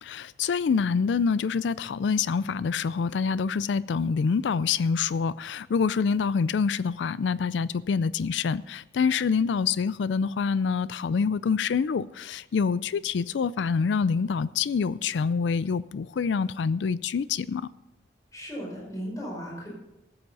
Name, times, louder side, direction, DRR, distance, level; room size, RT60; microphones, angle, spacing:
voice 1, 0.0-17.7, left 5 dB, 85° left, 0.4 m, -26 dB
voice 2, 18.3-19.7, equal, 20° left, 5.1 m, -36 dB
14.0 x 7.9 x 5.4 m
head